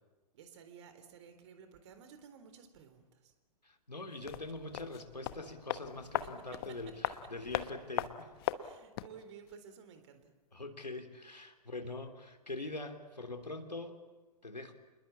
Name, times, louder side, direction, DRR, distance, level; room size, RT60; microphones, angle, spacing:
voice 1, 0.3-3.3 6.0-6.1 6.5-6.9 7.2-7.3 8.5-10.3, right 7 dB, 45° right, 9 dB, 3.9 m, -54 dB
voice 2, 3.6-6.9 7.3-8.3 10.5-14.0 14.4-14.7, left 2 dB, 85° left, 6 dB, 3.2 m, -43 dB
sound 1, 4.2-9.2 9.5-9.6, left 14 dB, 35° left, 1.1 m, -39 dB
28.0 x 21.0 x 8.6 m, 1.2 s
figure-of-eight pair, 115°, 21 cm